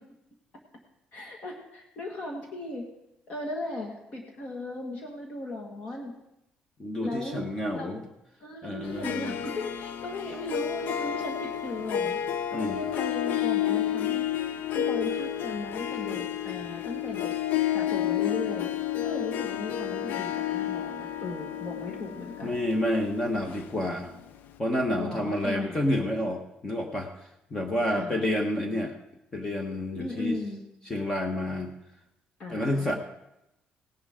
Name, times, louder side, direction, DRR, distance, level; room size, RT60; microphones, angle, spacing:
voice 1, 1.1-2.8 3.3-6.1 7.0-7.9 8.4-12.2 12.5-14.3 14.7-17.4 17.7-18.7 19.0-22.6 25.0-25.8 27.9-28.2 30.0-30.6 32.4-33.0, left 2 dB, 40° left, 1 dB, 1.9 m, -37 dB
voice 2, 6.8-8.0 8.6-9.4 12.5-12.8 22.4-24.1 24.6-29.0 29.3-30.4 30.9-31.7 32.5-33.0, left 1 dB, 20° left, 3 dB, 1.1 m, -29 dB
Harp, 8.8-24.2, left 11 dB, 65° left, 0.6 m, -31 dB
17.5 x 11.0 x 3.7 m, 0.86 s
cardioid pair, 175°, 3 cm